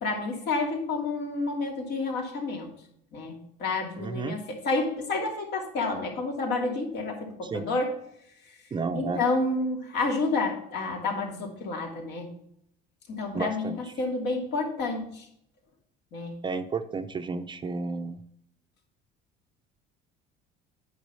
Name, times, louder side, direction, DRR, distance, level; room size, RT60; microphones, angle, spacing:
voice 1, 0.0-2.7 3.1-7.9 8.9-12.3 13.1-13.7 14.0-15.3 16.1-16.4, left 3 dB, 65° left, 1 dB, 2.7 m, -29 dB
voice 2, 4.0-4.4 7.4-7.7 8.7-9.2 13.3-13.9 16.4-18.2, right 4 dB, 25° right, 9 dB, 0.6 m, -32 dB
8.7 x 5.4 x 5.5 m, 0.71 s
cardioid pair, 125°, 19 cm